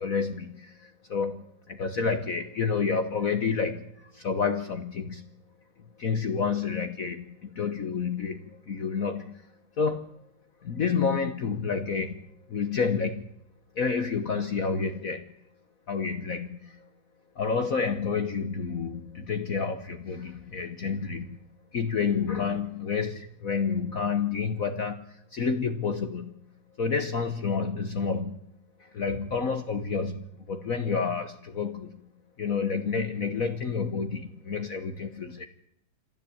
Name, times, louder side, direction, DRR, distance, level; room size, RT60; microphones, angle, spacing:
voice 1, 0.0-5.3 6.0-9.5 9.8-10.1 10.6-12.2 12.5-13.3 13.7-15.2 15.9-16.8 17.4-21.4 21.7-26.3 26.8-28.5 28.8-32.0 32.4-35.5, left 5 dB, 50° left, 8 dB, 1.4 m, -29 dB
26.0 x 13.5 x 8.6 m, 0.75 s
omnidirectional pair, 2.2 m